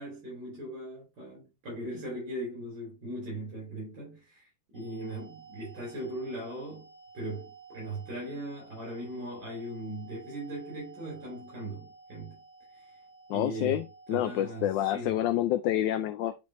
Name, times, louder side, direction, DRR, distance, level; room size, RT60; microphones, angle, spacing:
voice 1, 0.0-6.9 7.1-12.4 12.7-12.9 13.3-13.8 14.1-15.2, right 1 dB, 60° right, 5.2 m, -39 dB
sound 1, 4.7-14.6, right 4 dB, 15° right, 1.6 m, -53 dB
voice 2, 13.3-16.4, left 12 dB, 75° left, 1.1 m, -28 dB
9.5 x 4.2 x 3.0 m
omnidirectional pair, 2.2 m